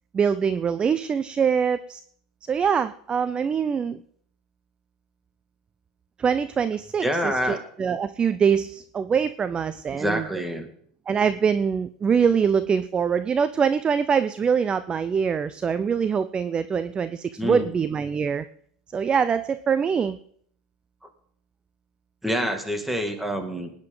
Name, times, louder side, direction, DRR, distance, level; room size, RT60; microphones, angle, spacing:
voice 1, 0.1-2.0 2.5-4.0 6.2-10.3 11.1-18.5 18.9-20.2, right 6 dB, 25° right, 14 dB, 0.5 m, -24 dB
voice 2, 7.0-7.6 9.9-10.7 17.4-17.7 22.2-23.7, equal, 5° right, 5 dB, 2.3 m, -27 dB
19.5 x 9.7 x 3.9 m, 0.63 s
hypercardioid pair, 105°, 4 cm